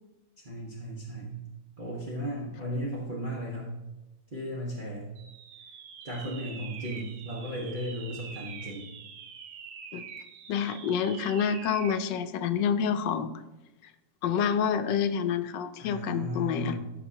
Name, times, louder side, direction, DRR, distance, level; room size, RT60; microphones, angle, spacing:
voice 1, 0.4-1.4 1.8-3.7 4.3-5.1 6.0-8.9 15.8-16.8, equal, 30° right, -6 dB, 1.5 m, -35 dB
sound 1, 5.2-12.1, right 7 dB, 90° right, 1.5 m, -45 dB
voice 2, 10.5-13.3 14.2-16.8, left 7 dB, 80° left, 10 dB, 1.3 m, -28 dB
14.5 x 6.2 x 2.9 m, 0.99 s
omnidirectional pair, 1.9 m